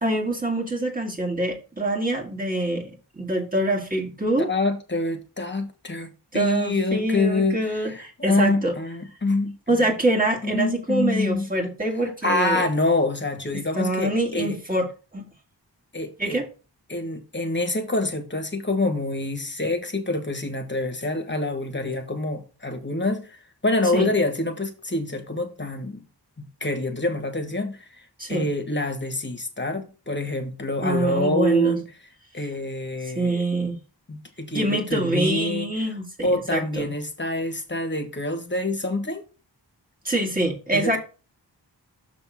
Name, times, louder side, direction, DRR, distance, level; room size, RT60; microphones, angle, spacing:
voice 1, 0.0-4.5 6.3-8.8 9.7-12.7 13.5-14.9 15.1-15.3 16.2-16.5 23.9-24.1 28.2-28.5 30.8-31.8 33.1-33.8 34.5-36.9 40.0-41.0, right 1 dB, 20° right, 2.0 m, -25 dB
voice 2, 4.4-9.9 10.4-11.4 12.2-14.6 15.9-16.4 16.9-26.0 26.4-31.8 32.3-33.4 34.1-35.7 36.2-39.2 40.7-41.0, left 2 dB, 25° left, 1.3 m, -26 dB
6.8 x 3.5 x 6.2 m
wide cardioid pair, 95°, 42 cm